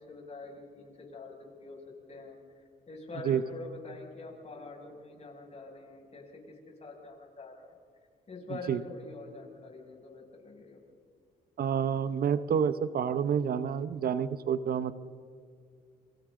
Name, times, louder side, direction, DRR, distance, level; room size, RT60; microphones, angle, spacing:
voice 1, 0.0-7.8 8.3-10.8, left 3 dB, 40° left, 0 dB, 6.6 m, -46 dB
voice 2, 11.6-15.0, right 7 dB, 60° right, 13 dB, 0.9 m, -28 dB
27.0 x 25.5 x 3.8 m, 2.2 s
cardioid pair, 90°, 18 cm